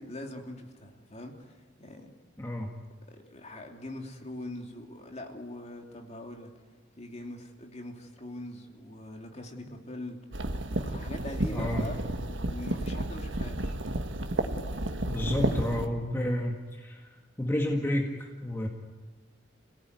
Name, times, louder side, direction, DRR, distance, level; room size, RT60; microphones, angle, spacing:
voice 1, 0.0-2.1 3.1-6.7 7.0-10.2 10.7-13.8 15.3-15.9 18.5-18.7, left 1 dB, 35° left, 2 dB, 2.9 m, -43 dB
voice 2, 2.4-2.7 11.5-11.9 15.1-17.1 17.4-18.7, left 1 dB, 15° left, 1 dB, 2.0 m, -30 dB
sound 1, 10.3-15.9, right 1 dB, 75° right, 1.6 m, -31 dB
28.0 x 17.5 x 9.6 m, 1.4 s
head